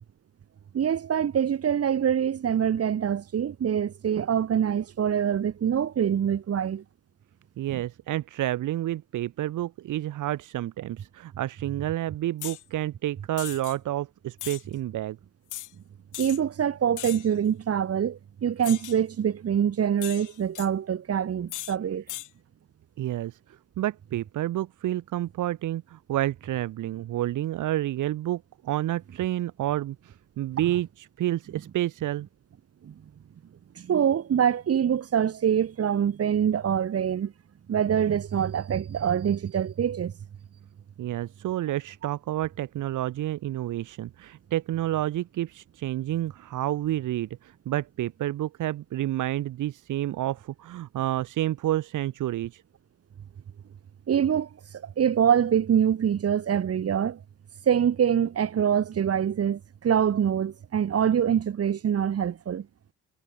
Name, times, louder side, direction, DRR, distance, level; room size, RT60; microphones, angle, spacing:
voice 1, 0.7-6.8 7.7-7.8 16.2-22.0 32.8-32.9 33.8-37.3 37.7-40.1 54.1-54.5 54.8-57.2 57.7-62.7, right 8 dB, 50° right, 2.4 m, -25 dB
voice 2, 7.6-15.2 23.0-23.4 23.8-32.3 41.0-52.6, right 14 dB, 80° right, 4.6 m, -29 dB
sound 1, 12.4-12.6 13.4-13.8 14.4-14.6 15.5-15.7 16.1-16.4 17.0-17.3 18.6-19.0 20.0-20.7 21.5-21.8 22.1-22.3, left 15 dB, 85° left, 3.0 m, -37 dB
cardioid pair, 90°, 30 cm